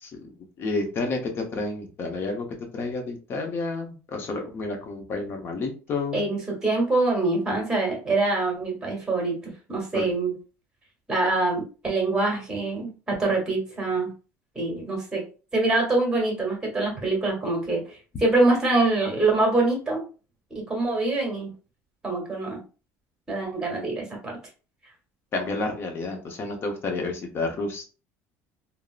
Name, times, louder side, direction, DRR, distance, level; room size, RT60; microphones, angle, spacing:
voice 1, 0.0-2.5 2.7-6.3 9.9-10.1 25.3-27.9, left 3 dB, 35° left, 3 dB, 0.8 m, -30 dB
voice 2, 6.1-9.4 9.7-10.3 11.1-14.1 14.5-15.2 15.5-20.0 20.7-21.5 22.0-22.6 23.3-24.4, right 2 dB, 10° right, 0 dB, 1.3 m, -24 dB
3.6 x 2.0 x 2.4 m, 0.35 s
cardioid pair, 140°, 6 cm